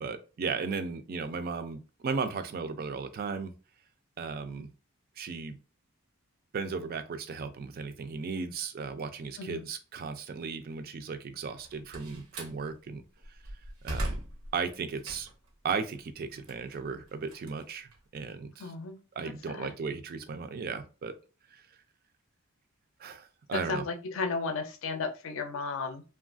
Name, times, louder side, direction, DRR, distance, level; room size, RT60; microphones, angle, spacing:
voice 1, 0.0-3.5 4.2-4.7 5.2-5.6 6.5-13.0 13.8-14.2 14.5-15.3 15.6-18.7 19.1-21.2 21.5-21.6 23.0-23.9, right 5 dB, 45° right, 9 dB, 0.3 m, -36 dB
Slam, 11.5-12.6 13.2-15.5 15.9-18.3, right 1 dB, 90° right, 0.8 m, -39 dB
voice 2, 18.6-18.9 19.5-19.7 23.5-26.0, left 4 dB, 65° left, 7 dB, 0.5 m, -34 dB
3.0 x 2.3 x 2.4 m, 0.33 s
head